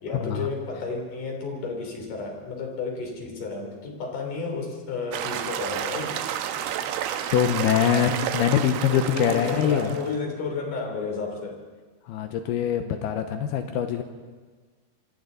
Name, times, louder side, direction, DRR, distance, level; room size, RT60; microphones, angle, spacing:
voice 1, 0.0-6.1 8.9-11.6 14.0-14.1, left 4 dB, 55° left, 2 dB, 4.7 m, -32 dB
sound 1, 5.1-10.2, right 10 dB, 80° right, 2.9 m, -31 dB
voice 2, 7.3-9.9 12.1-14.0, left 9 dB, 80° left, 7 dB, 2.9 m, -24 dB
27.0 x 24.5 x 4.0 m, 1.4 s
omnidirectional pair, 4.6 m